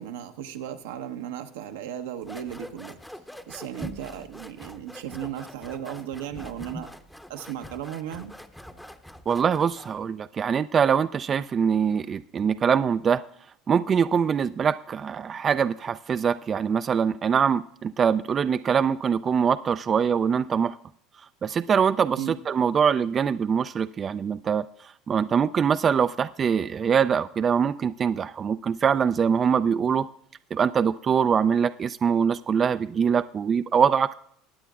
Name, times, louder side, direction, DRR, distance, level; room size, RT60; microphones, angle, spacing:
voice 1, 0.0-3.0 3.5-6.9 7.3-8.3 22.2-22.4, right 10 dB, 80° right, 7 dB, 0.9 m, -35 dB
sound 1, 2.2-10.0, equal, 5° left, 0.8 m, -43 dB
voice 2, 9.3-13.2 13.7-20.8 21.4-22.2 22.5-24.7 25.1-30.1 30.5-34.2, right 7 dB, 35° right, 12 dB, 0.3 m, -23 dB
20.0 x 9.1 x 2.4 m, 0.66 s
hypercardioid pair, 80°, 0 cm